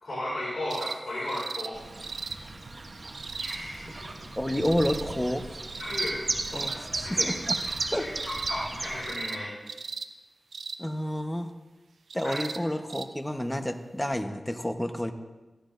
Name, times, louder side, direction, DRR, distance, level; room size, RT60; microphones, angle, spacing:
voice 1, 0.0-1.8 3.4-4.1 5.8-6.3 6.5-7.3 7.9-9.6 12.2-12.4, left 1 dB, 65° left, -7 dB, 4.3 m, -35 dB
sound 1, 0.7-1.0 1.3-1.7 2.0-2.4 3.1-3.6 4.5-5.0 5.7-6.1 6.4-6.8 7.4-7.9 8.2-8.5 9.0-9.4 9.7-10.1 10.5-10.8 12.1-12.6 12.9-13.1 14.1-14.2, right 5 dB, 85° right, 0.5 m, -37 dB
Chirp tweet, 1.7-9.1, right 2 dB, 55° right, 1.0 m, -35 dB
voice 2, 4.4-5.5 6.5-6.8 7.1-7.6 7.9-8.1 10.8-11.5 12.1-15.1, equal, 10° left, 7 dB, 1.0 m, -29 dB
15.5 x 11.5 x 2.6 m, 1.2 s
cardioid pair, 40°, 0 cm